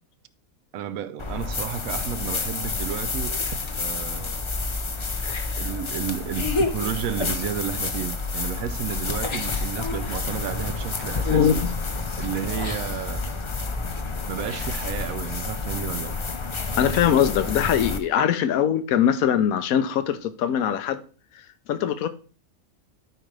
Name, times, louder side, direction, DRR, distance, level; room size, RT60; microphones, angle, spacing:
voice 1, 0.7-3.3 3.8-4.4 5.6-11.6 12.2-13.2 14.3-16.1, right 9 dB, 75° right, 1.0 m, -32 dB
sound 1, 1.2-18.0, left 3 dB, 50° left, 0.3 m, -29 dB
voice 2, 11.2-11.7 16.8-21.0 21.7-22.1, left 9 dB, 80° left, 1.1 m, -22 dB
12.5 x 5.0 x 3.2 m
omnidirectional pair, 1.5 m